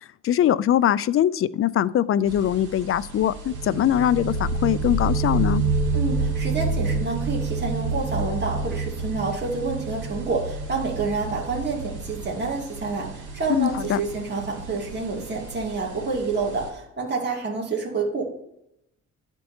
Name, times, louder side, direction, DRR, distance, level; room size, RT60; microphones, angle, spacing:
voice 1, 0.2-5.6 13.5-14.0, left 10 dB, 45° left, 18 dB, 0.4 m, -22 dB
sound 1, 2.2-16.7, right 2 dB, 90° right, 2.6 m, -40 dB
sound 2, 3.5-14.9, right 3 dB, 60° right, 1.1 m, -28 dB
voice 2, 5.9-18.2, right 4 dB, 35° right, -3 dB, 2.4 m, -28 dB
12.0 x 4.5 x 2.8 m, 0.81 s
cardioid pair, 90°, 30 cm